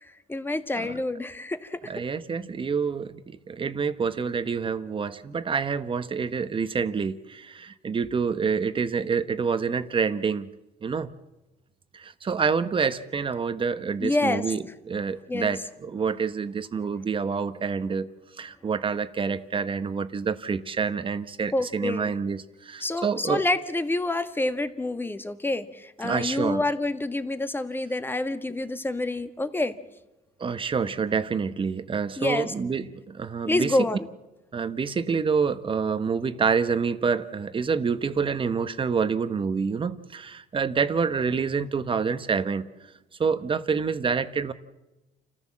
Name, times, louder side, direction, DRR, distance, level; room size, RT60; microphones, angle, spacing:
voice 1, 0.3-2.0 14.0-14.4 15.3-15.5 21.5-22.1 22.8-29.7 32.2-32.5 33.5-34.0, left 2 dB, 10° left, 10 dB, 1.6 m, -27 dB
voice 2, 1.9-10.5 10.8-11.1 11.9-18.1 18.4-23.4 26.0-26.6 30.4-33.9 34.5-42.7 43.2-44.5, right 5 dB, 30° right, 12 dB, 1.2 m, -27 dB
29.5 x 14.5 x 7.5 m, 1.0 s
cardioid pair, 110°, 17 cm